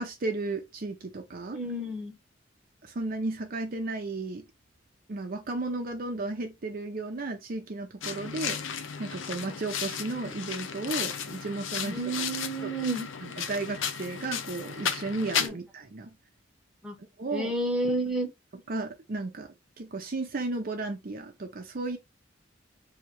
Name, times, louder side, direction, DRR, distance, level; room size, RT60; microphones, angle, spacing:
voice 1, 0.0-1.6 2.8-4.4 5.1-8.6 9.0-12.0 12.6-12.7 13.2-16.1 17.2-17.5 18.7-19.5 19.8-22.0, right 2 dB, 50° right, 0.6 m, -34 dB
voice 2, 1.5-2.1 11.8-13.1 15.4-15.6 16.8-16.9 17.3-18.3, right 1 dB, 5° right, 1.1 m, -30 dB
sound 1, 8.0-15.5, left 7 dB, 85° left, 0.6 m, -34 dB
3.2 x 2.7 x 4.5 m
head